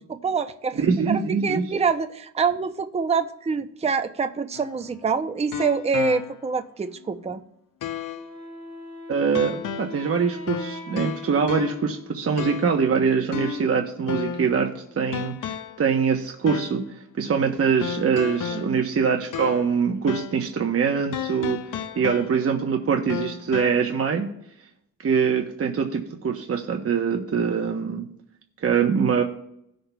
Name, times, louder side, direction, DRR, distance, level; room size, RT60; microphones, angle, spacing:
voice 1, 0.1-7.4 18.5-18.8, right 5 dB, 20° right, 8 dB, 0.6 m, -26 dB
voice 2, 0.8-1.6 9.1-15.4 15.8-24.3 25.0-28.1 28.6-29.2, right 6 dB, 45° right, 3 dB, 0.9 m, -23 dB
sound 1, 4.5-6.6 7.0-7.1 7.8-8.3 9.3-10.1 10.5-12.0 12.4-12.8 13.3-14.6 15.1-15.9 16.5-16.9 17.8-19.8 20.1-20.5 21.1-22.6 23.1-23.7, left 8 dB, 65° left, 0.7 m, -33 dB
Wind instrument woodwind instrument, 8.1-12.9, left 3 dB, 20° left, 2.9 m, -41 dB
17.0 x 6.4 x 2.3 m, 0.74 s
cardioid pair, 100°, 34 cm